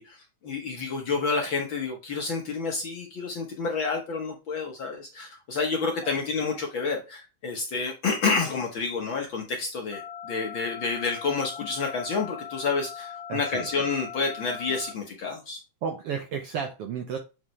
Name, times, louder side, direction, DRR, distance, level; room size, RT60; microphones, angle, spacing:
voice 1, 0.0-15.6, left 4 dB, 55° left, 2 dB, 1.4 m, -29 dB
sound 1, 9.9-14.9, left 8 dB, 80° left, 2.1 m, -40 dB
voice 2, 13.3-13.7 15.8-17.2, right 7 dB, 75° right, 5 dB, 1.4 m, -32 dB
7.3 x 4.9 x 3.2 m, 0.29 s
omnidirectional pair, 3.4 m